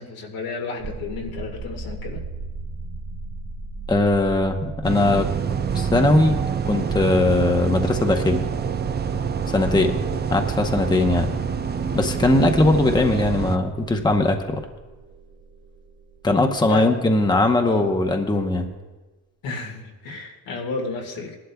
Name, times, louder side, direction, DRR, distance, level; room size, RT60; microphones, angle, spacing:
voice 1, 0.0-2.2 16.6-17.0 17.2-18.0 19.4-21.4, left 4 dB, 85° left, 0 dB, 1.9 m, -32 dB
sound 1, 0.8-17.7, right 3 dB, 65° right, 1.6 m, -39 dB
voice 2, 3.9-5.3 5.7-6.4 6.6-8.4 9.5-9.9 10.3-11.3 11.9-14.6 16.2-18.7, left 2 dB, 10° left, 4 dB, 0.8 m, -20 dB
sound 2, 4.8-13.6, right 6 dB, 30° right, 0.5 m, -26 dB
18.5 x 11.5 x 2.3 m, 1.2 s
cardioid pair, 105°, 34 cm